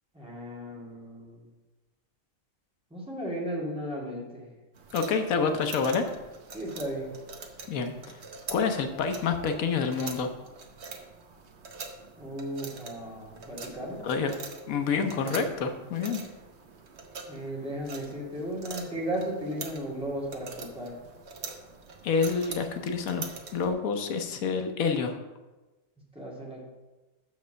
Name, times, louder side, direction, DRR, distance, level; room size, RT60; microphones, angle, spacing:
voice 1, 0.1-1.5 2.9-4.5 6.5-7.1 12.2-14.0 17.3-21.0 26.1-26.6, right 1 dB, 5° right, -6 dB, 2.1 m, -35 dB
sound 1, 4.8-23.7, right 4 dB, 55° right, 1.1 m, -44 dB
voice 2, 4.9-6.1 7.7-8.2 8.5-10.3 14.0-14.3 14.7-16.2 22.0-25.2, left 5 dB, 90° left, 6 dB, 1.2 m, -28 dB
6.7 x 5.3 x 6.3 m, 1.1 s
omnidirectional pair, 1.4 m